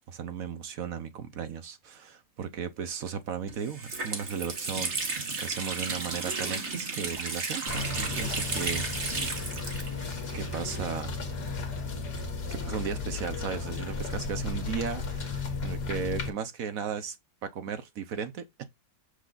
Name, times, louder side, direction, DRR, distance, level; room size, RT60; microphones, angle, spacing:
voice 1, 0.1-9.2 10.3-11.1 12.1-12.2 12.5-17.2 17.4-18.6, right 7 dB, 60° right, 1.1 m, -36 dB
Water tap faucet, 3.0-3.1 3.5-11.2 11.5-11.6 12.4-13.9, right 4 dB, 40° right, 1.8 m, -34 dB
sound 1, 7.7-16.3, left 4 dB, 70° left, 2.3 m, -34 dB
6.7 x 4.9 x 3.8 m
omnidirectional pair, 1.8 m